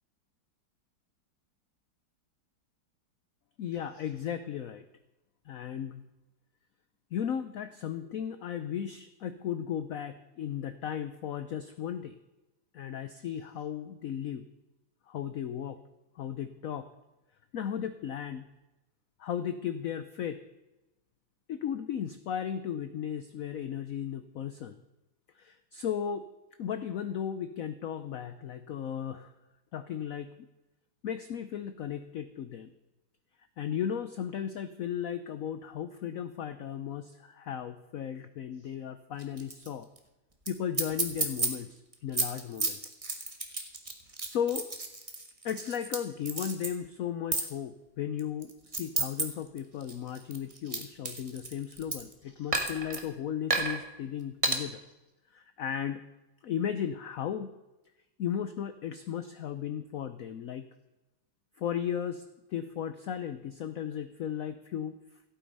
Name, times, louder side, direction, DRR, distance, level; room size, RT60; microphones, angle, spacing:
voice 1, 3.6-4.8 5.5-6.1 7.1-12.2 12.7-14.4 15.1-15.8 16.2-16.9 17.5-18.5 19.2-20.4 21.5-24.8 25.3-26.3 26.6-29.3 29.7-30.3 31.0-32.7 33.6-39.9 40.5-42.8 44.2-44.7 45.4-54.8 55.3-56.0 56.4-57.5 58.2-60.7 61.6-62.2 62.5-65.0, left 9 dB, 70° left, 11 dB, 0.8 m, -35 dB
sound 1, 39.2-39.7 40.0-40.1 40.5-40.6 40.7-41.5 41.9-46.0 46.3-46.7 47.3-47.5 48.2-49.2 49.6-52.1 52.5-53.0 53.5-53.8 54.4-54.6, right 3 dB, 20° right, 1.3 m, -31 dB
15.0 x 8.8 x 5.4 m, 1.0 s
omnidirectional pair, 2.1 m